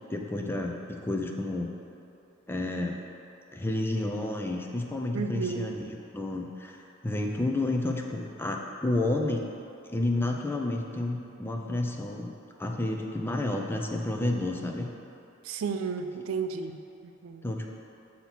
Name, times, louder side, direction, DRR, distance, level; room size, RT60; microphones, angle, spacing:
voice 1, 0.1-1.7 2.5-3.0 3.5-9.5 9.8-12.3 12.6-14.9 17.4-17.7, left 2 dB, 10° left, 1 dB, 0.4 m, -30 dB
voice 2, 5.1-5.7 15.4-16.8 17.0-17.4, right 5 dB, 80° right, 7 dB, 0.4 m, -33 dB
7.0 x 2.8 x 5.8 m, 2.8 s
head